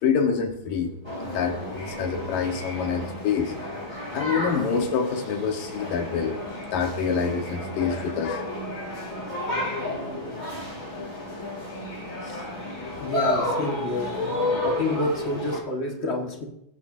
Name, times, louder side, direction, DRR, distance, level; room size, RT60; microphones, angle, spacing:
voice 1, 0.0-0.9 1.3-3.7 4.1-6.3 6.7-8.5, left 6 dB, 90° left, 4 dB, 3.1 m, -26 dB
sound 1, 1.0-15.6, left 2 dB, 15° left, 3.3 m, -31 dB
voice 2, 13.0-14.1 14.6-16.4, left 1 dB, 35° left, 1 dB, 1.0 m, -29 dB
24.0 x 11.0 x 2.7 m, 0.80 s
omnidirectional pair, 3.8 m